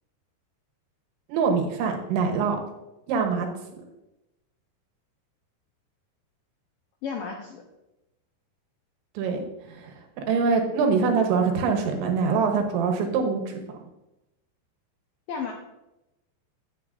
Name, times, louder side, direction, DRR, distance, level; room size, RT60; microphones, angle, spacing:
voice 1, 1.3-2.6 3.1-3.5 9.2-13.6, right 5 dB, 85° right, 3 dB, 3.5 m, -24 dB
voice 2, 7.0-7.6 15.3-15.5, left 6 dB, 85° left, 1 dB, 1.9 m, -32 dB
9.7 x 9.4 x 2.6 m, 0.93 s
omnidirectional pair, 5.2 m